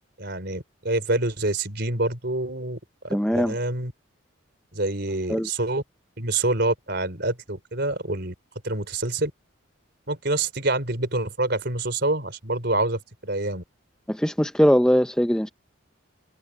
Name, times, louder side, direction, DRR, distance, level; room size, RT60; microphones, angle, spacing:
voice 1, 0.2-3.9 4.7-5.8 6.2-8.3 8.6-9.3 10.1-13.6, right 2 dB, 55° right, 4.6 m, -26 dB
voice 2, 3.1-3.5 5.3-5.5 14.1-15.5, equal, 5° left, 0.5 m, -21 dB
head